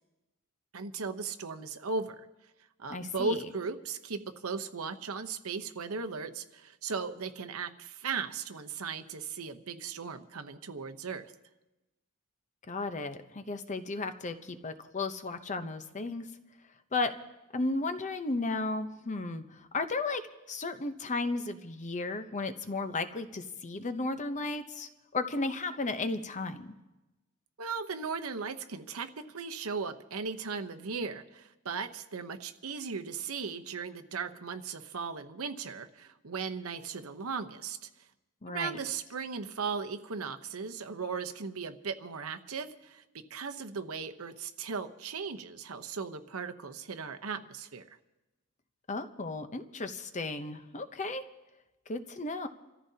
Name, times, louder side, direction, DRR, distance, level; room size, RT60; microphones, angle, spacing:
voice 1, 0.7-2.3 2.8-11.3 27.6-37.9 38.5-43.0 43.3-47.8, right 5 dB, 75° right, 7 dB, 0.9 m, -37 dB
voice 2, 2.9-3.4 12.7-16.3 16.9-17.1 17.5-20.2 20.5-26.7 38.4-38.8 48.9-51.2 51.9-52.5, left 3 dB, 35° left, 9 dB, 0.8 m, -34 dB
28.5 x 14.0 x 2.8 m, 1.0 s
head